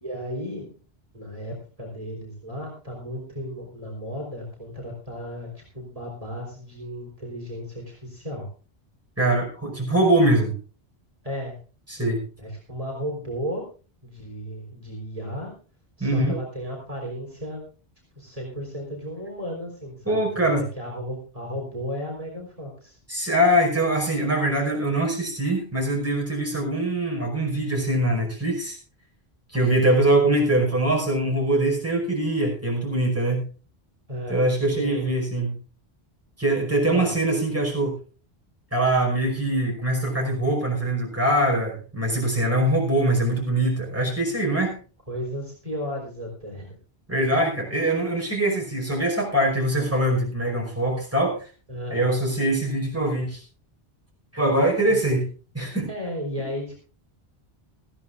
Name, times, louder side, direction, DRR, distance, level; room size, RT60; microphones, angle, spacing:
voice 1, 0.0-0.7 1.1-8.5 11.2-11.6 12.4-13.7 14.0-15.5 16.0-17.6 18.1-23.0 34.1-34.4 34.8-35.1 36.8-37.1 45.1-46.8 51.7-52.2 54.9-55.0 55.9-56.7, equal, 35° right, -2 dB, 4.2 m, -34 dB
voice 2, 9.2-10.5 11.9-12.2 16.0-16.4 20.1-20.6 23.1-28.8 29.5-33.5 34.3-35.6 36.4-38.0 38.7-44.8 47.1-51.5 51.9-53.4 54.3-55.3 55.5-55.9, right 1 dB, 15° right, -1 dB, 5.4 m, -23 dB
20.0 x 15.0 x 2.6 m, 0.36 s
omnidirectional pair, 1.1 m